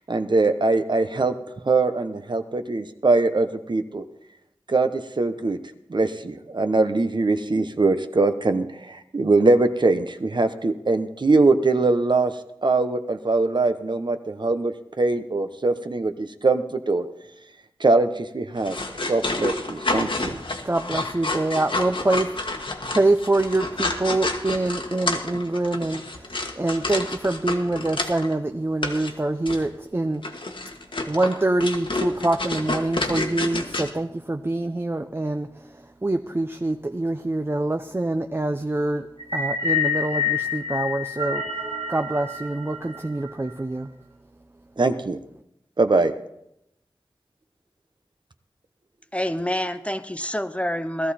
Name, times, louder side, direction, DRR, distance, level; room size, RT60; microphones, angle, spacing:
voice 1, 0.1-1.3 1.6-4.0 4.7-5.6 5.9-12.3 12.6-17.1 17.8-18.8 19.1-20.4 44.8-45.2 45.8-46.1, right 3 dB, 60° right, 9 dB, 0.9 m, -22 dB
sound 1, 18.6-28.3 28.8-29.1 29.5-29.7 30.2-33.9, left 2 dB, 70° left, 1.5 m, -29 dB
voice 2, 20.6-30.3 31.0-41.4 41.9-43.9, right 2 dB, 25° right, 7 dB, 0.6 m, -25 dB
sound 2, 39.2-43.5, left 5 dB, 85° right, 2.2 m, -27 dB
voice 3, 49.1-51.1, equal, 15° left, 11 dB, 0.7 m, -27 dB
16.5 x 13.5 x 4.2 m, 0.79 s
wide cardioid pair, 50°, 9 cm